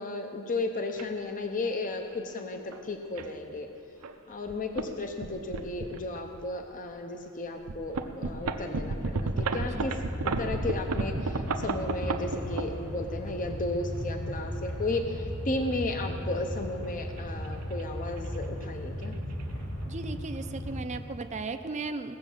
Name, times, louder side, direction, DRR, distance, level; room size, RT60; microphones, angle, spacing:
voice 1, 0.0-3.7 4.3-19.2, left 2 dB, 40° left, 5 dB, 0.8 m, -34 dB
sound 1, 1.0-1.1 1.9-2.1 2.7-2.8 3.2-3.3 4.0-4.2 4.5-4.9 5.2-6.5 7.0-7.1 7.6-13.2 14.0-15.0 16.7-17.8 18.1-18.4 18.6-18.7 19.0-19.4, right 3 dB, 80° right, 0.7 m, -33 dB
sound 2, 8.6-20.8, equal, 90° left, 2.6 m, -37 dB
voice 2, 19.9-22.2, right 3 dB, 30° right, 7 dB, 0.5 m, -36 dB
17.0 x 7.1 x 7.3 m, 2.7 s
head